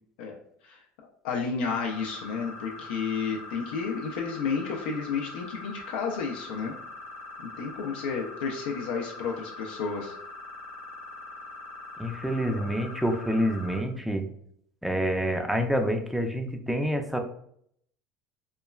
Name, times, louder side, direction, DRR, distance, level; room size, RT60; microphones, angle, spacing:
voice 1, 1.2-6.7 7.4-10.1, left 5 dB, 90° left, 0 dB, 0.4 m, -31 dB
sound 1, 1.6-13.8, left 2 dB, 45° left, 0.7 m, -43 dB
voice 2, 12.0-14.3 14.8-17.2, equal, 5° right, 5 dB, 0.3 m, -27 dB
3.0 x 2.2 x 2.3 m, 0.69 s
supercardioid pair, 115°, 5 cm